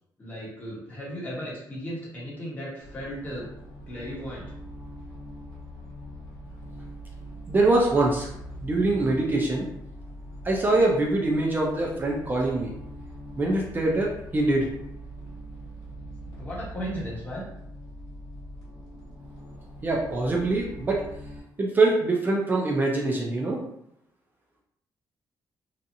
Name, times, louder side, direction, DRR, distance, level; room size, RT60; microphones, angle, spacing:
voice 1, 0.2-3.5 3.9-4.5 16.2-17.5, equal, 20° left, -7 dB, 1.1 m, -36 dB
sound 1, 2.8-21.4, equal, 55° left, 1.4 m, -42 dB
voice 2, 7.5-8.3 8.6-9.7 10.4-12.7 13.4-14.7 19.8-21.0 21.6-23.6, right 2 dB, 25° right, -1 dB, 0.4 m, -24 dB
2.7 x 2.3 x 2.5 m, 0.76 s
cardioid pair, 150°, 8 cm